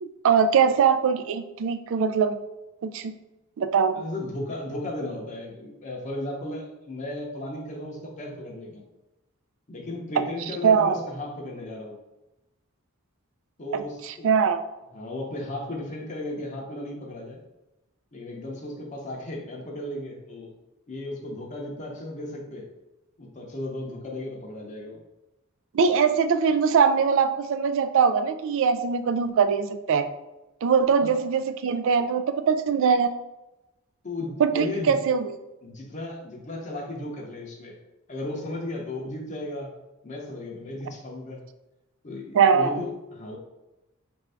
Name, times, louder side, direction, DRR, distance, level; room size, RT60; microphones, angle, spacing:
voice 1, 0.0-2.4 2.8-3.2 3.6-4.0 10.6-11.0 13.7-14.6 25.7-30.1 30.6-33.1 34.4-35.3 42.3-42.8, right 6 dB, 65° right, 10 dB, 0.3 m, -22 dB
voice 2, 4.0-8.8 9.7-12.0 13.6-14.3 14.9-17.4 18.1-20.5 20.9-22.7 23.2-25.0 31.0-31.1 34.0-35.0 35.6-37.8 38.1-39.7 40.0-41.4 42.0-43.4, left 1 dB, 35° left, -1 dB, 0.7 m, -35 dB
4.5 x 2.6 x 3.3 m, 0.98 s
head